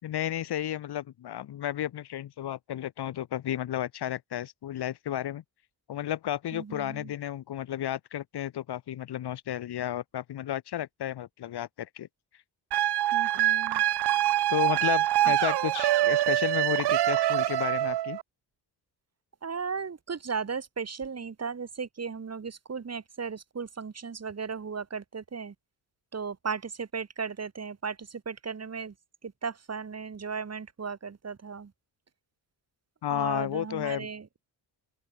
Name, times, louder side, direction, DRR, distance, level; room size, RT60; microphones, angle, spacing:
voice 1, 0.0-5.4 5.9-12.1 12.8-12.9 14.5-18.2 33.0-34.1, left 11 dB, 80° left, 4.2 m, -32 dB
voice 2, 6.5-7.1 13.1-13.8 15.2-15.3 19.4-25.5 26.1-28.9 29.2-31.7 33.1-34.3, right 5 dB, 40° right, 4.2 m, -36 dB
sound 1, 12.7-18.2, right 14 dB, 85° right, 1.2 m, -25 dB
open air
cardioid pair, 85°, 39 cm